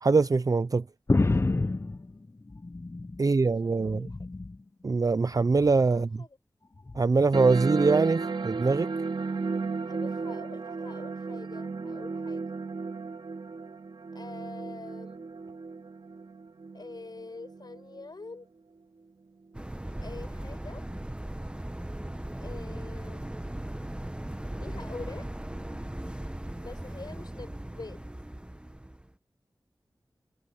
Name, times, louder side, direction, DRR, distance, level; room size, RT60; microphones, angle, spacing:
voice 1, 0.0-0.8 3.2-4.1 4.8-6.1 7.0-8.9, right 4 dB, 50° right, 0.5 m, -23 dB
sound 1, 1.1-3.3 3.7-4.6 5.5-5.9 6.9-7.0, left 2 dB, 35° left, 0.6 m, -29 dB
voice 2, 3.2-4.2 5.9-6.4 9.8-12.4 14.1-15.3 16.7-18.5 20.0-20.8 22.4-23.4 24.6-25.3 26.6-28.0, left 3 dB, 60° left, 5.6 m, -45 dB
sound 2, 7.3-18.3, right 4 dB, 85° right, 3.3 m, -34 dB
sound 3, 19.5-29.1, right 1 dB, 15° right, 1.1 m, -38 dB
wide cardioid pair, 60°, 8 cm